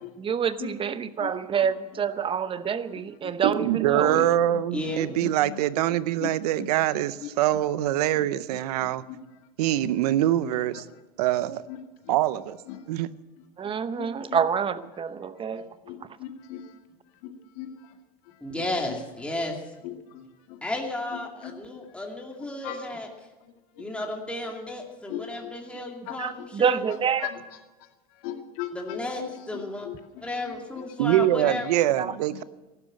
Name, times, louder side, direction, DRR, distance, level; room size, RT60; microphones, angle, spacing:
voice 1, 0.2-4.3 13.6-15.8 26.2-27.3 32.0-32.1, right 7 dB, 25° right, 0.9 m, -27 dB
voice 2, 1.2-1.7 3.2-3.3 3.9-4.9 5.2-5.6 6.2-6.3 6.6-6.7 6.9-7.3 8.1-8.3 8.8-9.2 9.8-9.9 10.4-10.8 11.7-11.8 12.0-12.1 12.7-12.9 13.6-14.4 15.5-16.8 17.2-18.0 18.3-19.0 19.8-20.6 21.1-21.8 22.6-22.8 23.4-23.9 25.1-26.5 27.2-27.4 27.8-31.5, left 12 dB, 70° left, 2.2 m, -40 dB
voice 3, 3.4-9.0 9.6-10.8 11.2-11.6 12.1-12.6 12.9-13.1 31.0-32.4, right 13 dB, 80° right, 0.7 m, -24 dB
voice 4, 4.7-5.1 18.4-19.6 20.6-23.1 23.8-26.8 28.7-29.9 30.2-31.9, left 1 dB, 5° left, 2.4 m, -33 dB
15.0 x 12.0 x 7.7 m
hypercardioid pair, 100°, 20 cm